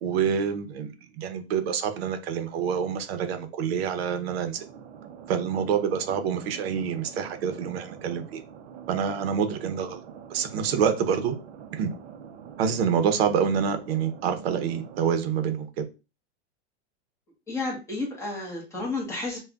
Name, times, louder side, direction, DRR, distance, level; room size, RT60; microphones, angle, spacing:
voice 1, 0.0-4.7 5.3-8.4 8.9-10.0 10.3-11.4 11.7-11.9 12.6-15.8, right 7 dB, 65° right, 0.9 m, -27 dB
sound 1, 4.5-15.0, right 8 dB, 90° right, 0.7 m, -45 dB
voice 2, 17.5-19.4, left 3 dB, 10° left, 1.2 m, -31 dB
5.7 x 2.4 x 2.4 m
supercardioid pair, 155°, 33 cm